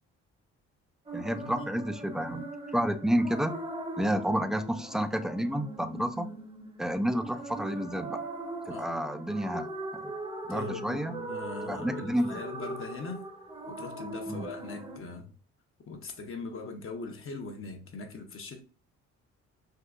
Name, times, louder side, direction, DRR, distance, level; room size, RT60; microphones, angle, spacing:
voice 1, 1.1-3.5 4.0-6.3 6.8-8.2 8.7-10.1 10.5-11.1 11.7-12.4 14.3-14.5, equal, ahead, 0.3 m, -30 dB
sound 1, 1.1-15.0, right 2 dB, 20° right, 0.8 m, -40 dB
voice 2, 10.5-13.2 13.7-15.3 15.9-18.6, left 4 dB, 45° left, 0.7 m, -40 dB
3.7 x 2.7 x 2.4 m
cardioid pair, 90°, 30 cm